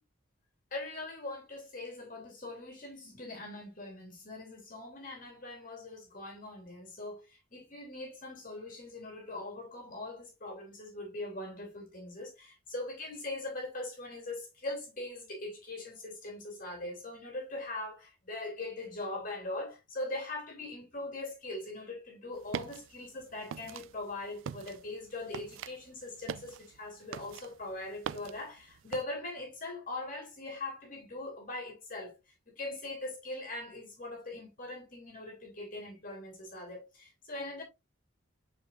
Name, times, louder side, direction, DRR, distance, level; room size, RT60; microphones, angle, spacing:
voice 1, 0.7-37.6, left 2 dB, 40° left, 2.9 m, -41 dB
sound 1, 22.3-29.0, right 8 dB, 65° right, 0.3 m, -44 dB
8.8 x 4.7 x 2.5 m
head